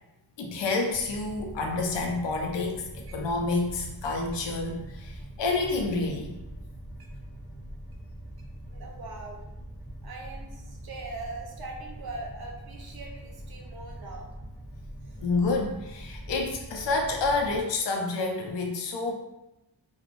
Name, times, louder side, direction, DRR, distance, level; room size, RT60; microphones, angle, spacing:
voice 1, 0.4-6.3 15.2-19.1, left 3 dB, 80° left, 2 dB, 0.5 m, -29 dB
sound 1, 0.9-17.6, right 1 dB, 5° right, 0.6 m, -43 dB
voice 2, 8.7-9.4 10.0-14.3 15.0-15.2, right 3 dB, 60° right, 0 dB, 0.6 m, -41 dB
2.5 x 2.1 x 3.0 m, 0.94 s
wide cardioid pair, 160°, 43 cm